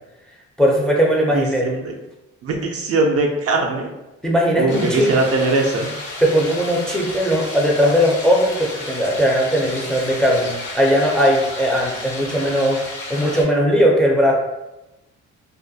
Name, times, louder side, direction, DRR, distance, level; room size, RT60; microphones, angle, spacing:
voice 1, 0.6-1.7 4.2-5.1 6.2-12.8 13.1-14.3, equal, 5° left, -2 dB, 0.4 m, -18 dB
voice 2, 1.3-1.9 2.4-3.9 4.5-5.9, right 3 dB, 50° right, 2 dB, 0.4 m, -20 dB
sound 1, 4.7-13.4, left 2 dB, 80° left, 1.2 m, -32 dB
2.4 x 2.1 x 2.6 m, 0.97 s
cardioid pair, 90°, 30 cm